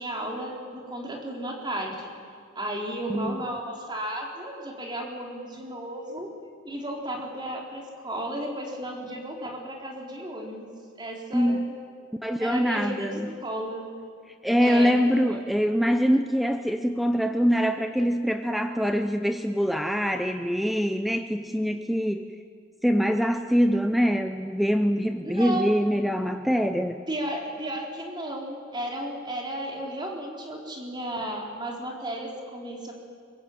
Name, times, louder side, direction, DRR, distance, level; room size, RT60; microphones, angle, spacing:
voice 1, 0.0-2.1 2.5-6.3 6.6-11.7 12.4-13.9 14.6-15.0 25.2-25.7 27.1-32.9, right 1 dB, 25° right, 0 dB, 4.1 m, -34 dB
voice 2, 11.3-11.7 12.2-13.3 14.4-22.3 22.8-27.0, equal, ahead, 7 dB, 0.7 m, -24 dB
23.0 x 22.5 x 8.7 m, 2.2 s
head